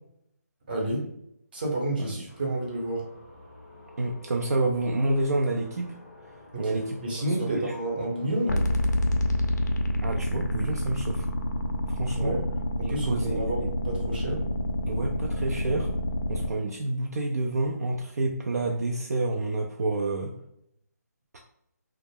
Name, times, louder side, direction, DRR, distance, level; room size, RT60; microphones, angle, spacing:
voice 1, 0.7-1.1 1.5-3.0 6.5-8.7 12.1-12.4 12.8-14.4, right 1 dB, 30° right, -1 dB, 0.7 m, -30 dB
sound 1, 2.3-8.6, left 2 dB, 20° left, 0.5 m, -49 dB
voice 2, 4.0-5.9 6.6-7.7 10.0-11.3 11.9-12.4 12.8-13.7 14.9-15.9 16.3-20.3, right 2 dB, 65° right, 1 dB, 0.4 m, -29 dB
sound 2, 8.5-16.5, left 1 dB, 80° left, 0.5 m, -28 dB
2.3 x 2.0 x 3.3 m, 0.76 s
figure-of-eight pair, 160°, 9 cm